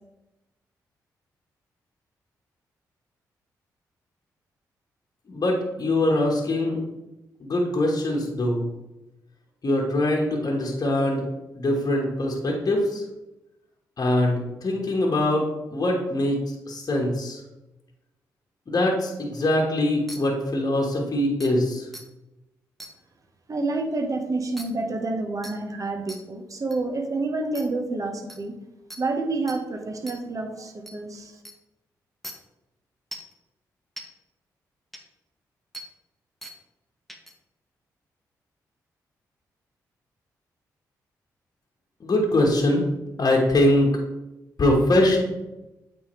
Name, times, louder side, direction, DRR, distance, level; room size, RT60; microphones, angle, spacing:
voice 1, 5.3-6.8 7.4-8.7 9.6-11.2 11.5-13.0 14.0-17.4 18.7-21.9 42.0-42.8 43.2-43.9 44.6-45.2, left 1 dB, 45° left, -1 dB, 1.3 m, -23 dB
sound 1, 20.1-20.2 20.9-21.0 21.4-21.5 21.9-22.0 22.8-22.9 24.6-24.7 25.4-25.6 26.1-26.2 26.7-26.8 27.6-27.7 28.3-28.4 28.9-29.0 29.5-29.6 30.1-30.2 30.9-31.0 31.5-31.6 32.2-32.3 33.1-33.3 34.0-34.1 34.9-35.0 35.7-35.9 36.4-36.6 37.1-37.3, equal, ahead, 1.1 m, -39 dB
voice 2, 23.5-28.5 29.0-31.4, right 3 dB, 40° right, 3 dB, 1.1 m, -28 dB
8.6 x 3.6 x 3.1 m, 0.97 s
hypercardioid pair, 40°, 8 cm